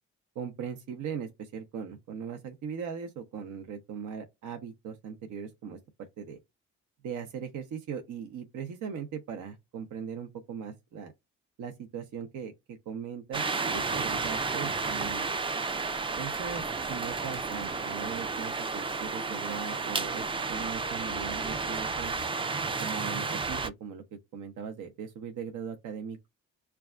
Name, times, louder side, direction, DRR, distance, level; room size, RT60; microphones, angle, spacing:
voice 1, 0.4-5.8 6.2-6.4 7.0-11.1 11.6-12.5 12.9-15.3 16.2-16.6 16.9-20.2 20.5-22.1 22.8-26.3, right 7 dB, 75° right, 0.7 m, -39 dB
sound 1, 13.3-23.7, right 4 dB, 20° right, 0.3 m, -32 dB
5.8 x 2.3 x 2.4 m
cardioid pair, 70°, 30 cm